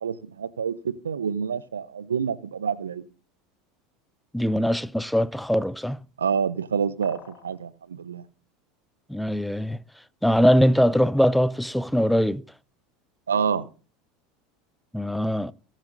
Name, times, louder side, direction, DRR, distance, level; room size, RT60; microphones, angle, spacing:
voice 1, 0.0-3.0 6.2-8.2 13.3-13.7, right 7 dB, 80° right, 0.8 m, -27 dB
voice 2, 4.3-6.0 9.1-9.8 10.2-12.4 14.9-15.5, equal, ahead, 0.6 m, -22 dB
sound 1, 7.0-7.6, left 10 dB, 45° left, 2.1 m, -46 dB
20.5 x 7.6 x 4.0 m
figure-of-eight pair, 75°, 0 cm